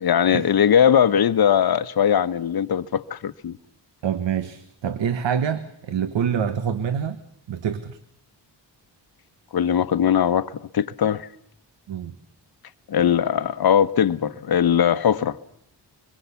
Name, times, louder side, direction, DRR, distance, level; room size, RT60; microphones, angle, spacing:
voice 1, 0.0-3.6 9.5-11.3 12.9-15.4, left 9 dB, 55° left, 0.9 m, -20 dB
voice 2, 4.0-7.2 7.5-8.0 11.9-12.1, right 8 dB, 90° right, 1.2 m, -26 dB
25.0 x 22.5 x 6.9 m
wide cardioid pair, 110°, 43 cm